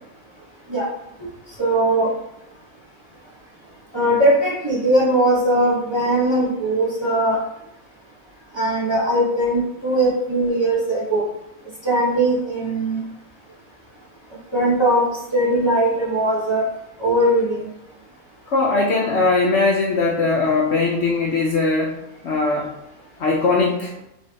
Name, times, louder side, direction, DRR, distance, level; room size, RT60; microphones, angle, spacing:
voice 1, 1.6-2.1 3.9-7.4 8.5-11.3 11.8-13.0 14.5-16.6 17.0-17.7, right 1 dB, 20° right, -7 dB, 1.1 m, -19 dB
voice 2, 18.5-22.0 22.2-22.7 23.2-23.9, left 3 dB, 65° left, -1 dB, 0.8 m, -20 dB
4.7 x 3.3 x 2.8 m, 0.86 s
omnidirectional pair, 1.5 m